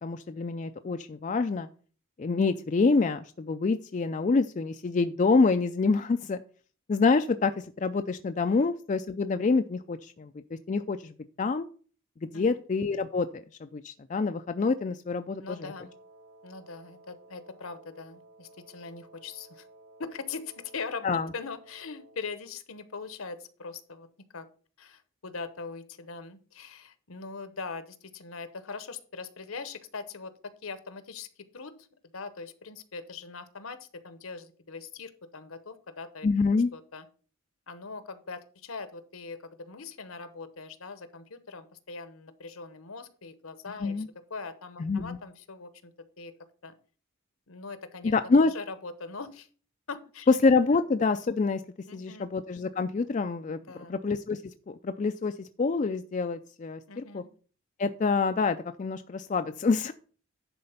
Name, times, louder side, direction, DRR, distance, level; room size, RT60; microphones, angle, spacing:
voice 1, 0.0-1.7 2.2-6.4 6.9-11.1 11.4-11.7 12.3-13.4 13.7-15.4 21.0-21.3 36.2-36.7 43.8-44.1 44.8-45.2 48.0-48.5 50.3-51.6 51.9-53.6 53.9-54.4 54.7-57.2 57.8-59.9, left 4 dB, 35° left, 8 dB, 0.3 m, -26 dB
voice 2, 15.4-15.9 16.4-19.7 20.0-24.5 24.8-31.7 32.1-36.3 36.7-37.1 37.7-44.0 44.3-45.9 46.2-46.3 46.6-46.7 47.5-48.1 48.4-49.5 49.9-50.3 50.7-50.8 51.9-52.3 53.7-54.0 56.9-57.3, left 4 dB, 75° left, 11 dB, 1.0 m, -41 dB
Wind instrument woodwind instrument, 15.5-22.3, right 2 dB, 80° right, 2.4 m, -55 dB
10.5 x 4.3 x 5.6 m, 0.42 s
head